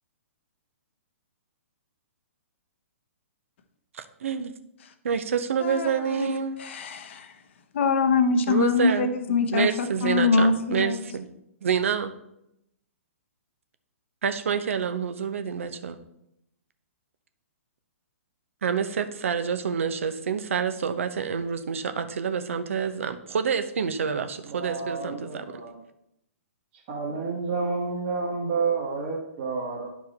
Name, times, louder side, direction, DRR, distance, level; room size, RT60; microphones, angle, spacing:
voice 1, 3.9-4.5 5.0-6.6 8.5-11.3 11.6-12.1 14.2-16.0 18.6-25.4, right 7 dB, 65° right, 9 dB, 0.8 m, -28 dB
voice 2, 5.6-5.9 6.2-6.3 6.6-7.3 7.7-10.9, left 4 dB, 55° left, 8 dB, 0.9 m, -23 dB
voice 3, 24.5-25.8 26.7-29.9, right 4 dB, 40° right, -4 dB, 1.6 m, -30 dB
10.5 x 4.7 x 4.1 m, 0.81 s
figure-of-eight pair, 125°, 8 cm